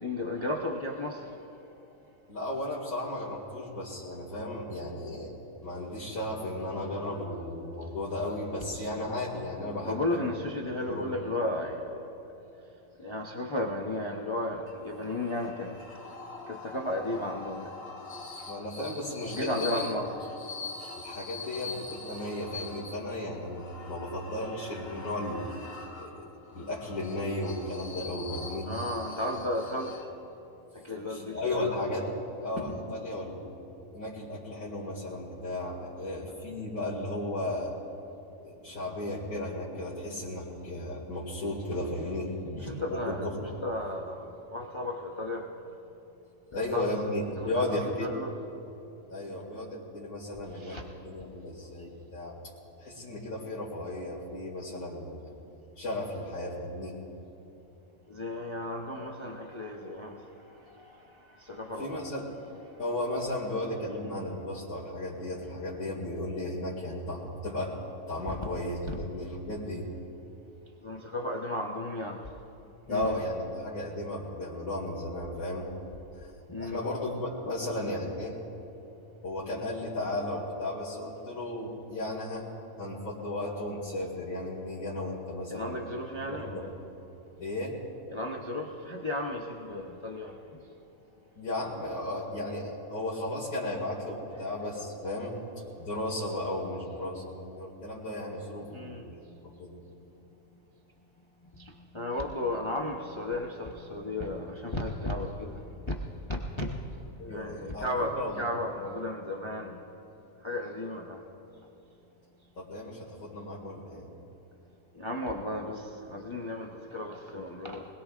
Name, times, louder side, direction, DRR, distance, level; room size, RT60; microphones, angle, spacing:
voice 1, 0.0-1.3 7.8-7.9 8.7-8.9 9.8-12.1 13.0-15.8 16.5-17.7 19.2-20.1 28.6-30.0 30.8-31.8 42.7-43.3 43.6-45.5 46.7-47.0 47.4-48.3 50.6-50.8 58.1-60.3 60.8-61.0 61.4-62.0 68.3-68.4 68.9-69.0 70.8-72.2 72.9-73.2 76.5-76.8 85.5-86.7 88.1-90.3 98.7-99.1 101.5-105.6 105.9-106.0 106.3-106.8 107.2-109.8 110.4-111.2 114.9-117.9, left 1 dB, 25° left, 0 dB, 0.8 m, -34 dB
voice 2, 2.3-10.2 10.9-11.1 18.5-19.9 21.0-26.3 26.5-28.7 31.1-32.1 32.4-33.6 33.9-37.7 38.4-43.4 46.5-48.1 49.1-50.8 51.0-52.4 52.8-55.3 55.8-57.0 61.8-62.3 62.8-67.8 68.1-69.9 72.9-75.7 76.2-76.3 76.6-78.4 79.2-82.4 82.8-85.8 86.3-86.7 87.4-87.7 91.3-95.4 95.8-99.1 99.6-99.8 107.2-108.3 112.6-114.1, left 1 dB, 80° left, -8 dB, 2.9 m, -35 dB
sound 1, 14.7-30.4, left 3 dB, 45° left, 1.6 m, -43 dB
25.0 x 20.5 x 2.5 m, 2.9 s
omnidirectional pair, 1.4 m